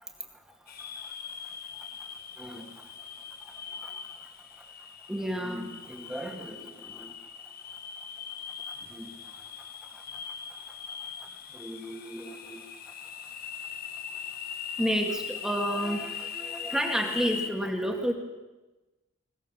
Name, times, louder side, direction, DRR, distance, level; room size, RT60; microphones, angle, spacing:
sound 1, 0.7-17.5, left 7 dB, 45° left, 1.3 m, -41 dB
voice 1, 5.1-6.6 6.9-7.1 9.0-9.1 11.6-12.6 14.8-18.1, equal, 5° right, 1 dB, 2.1 m, -31 dB
21.0 x 19.5 x 7.1 m, 1.1 s
head